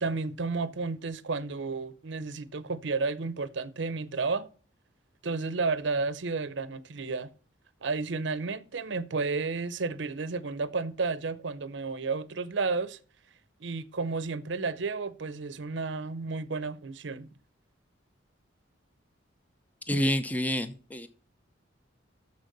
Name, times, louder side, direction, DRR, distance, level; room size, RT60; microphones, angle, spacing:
voice 1, 0.0-4.5 5.2-7.3 7.8-13.0 13.6-17.3, right 4 dB, 70° right, 0.6 m, -32 dB
voice 2, 19.9-21.1, equal, 10° left, 0.6 m, -28 dB
6.9 x 6.5 x 6.6 m
head